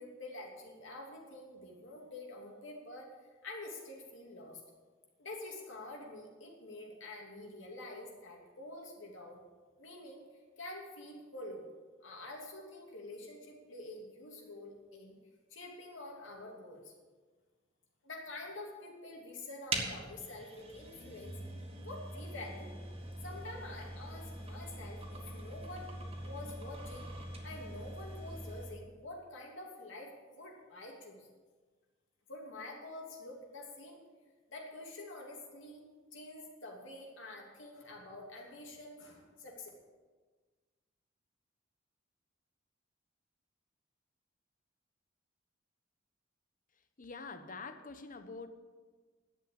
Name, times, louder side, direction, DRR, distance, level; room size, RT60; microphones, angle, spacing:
voice 1, 0.0-3.1 3.4-4.6 5.2-9.4 9.8-10.3 10.6-11.7 12.0-15.1 15.5-16.9 18.0-21.3 21.8-22.8 23.2-27.1 27.4-31.3 32.3-34.0 34.5-35.8 36.1-39.7, left 2 dB, 70° left, 0 dB, 2.8 m, -47 dB
sound 1, 19.7-28.8, right 2 dB, 30° right, 2.0 m, -43 dB
voice 2, 47.0-48.5, left 4 dB, 45° left, 9 dB, 1.0 m, -45 dB
11.5 x 8.0 x 8.7 m, 1.4 s
head